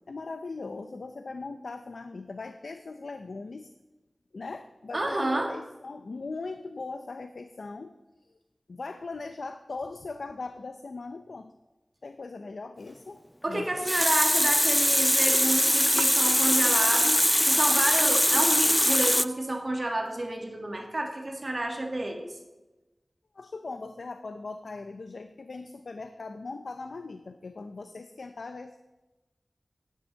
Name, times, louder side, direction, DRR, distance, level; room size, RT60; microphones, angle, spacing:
voice 1, 0.1-3.7 4.3-7.9 8.7-11.5 12.0-13.2 13.5-13.9 16.3-16.4 23.3-28.8, left 3 dB, 85° left, 8 dB, 0.5 m, -39 dB
voice 2, 4.9-5.5 13.4-22.3, right 1 dB, 50° right, 2 dB, 1.6 m, -30 dB
Water tap faucet, 13.6-19.3, equal, 5° left, 0.3 m, -22 dB
12.0 x 10.5 x 3.9 m, 1.1 s
wide cardioid pair, 45°, 0 cm